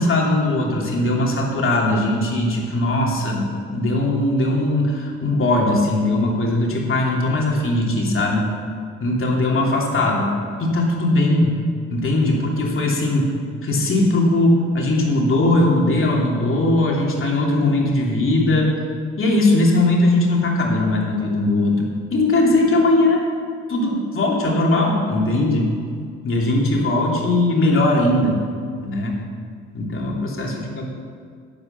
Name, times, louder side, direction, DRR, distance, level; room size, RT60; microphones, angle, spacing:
voice 1, 0.0-8.5 9.0-10.3 10.6-11.5 11.9-13.3 13.6-18.7 19.2-23.2 23.7-25.7 26.2-28.4 28.8-29.2 29.7-30.9, left 2 dB, 45° left, -2 dB, 3.0 m, -19 dB
12.0 x 8.3 x 6.7 m, 2.1 s
cardioid pair, 90°, 30 cm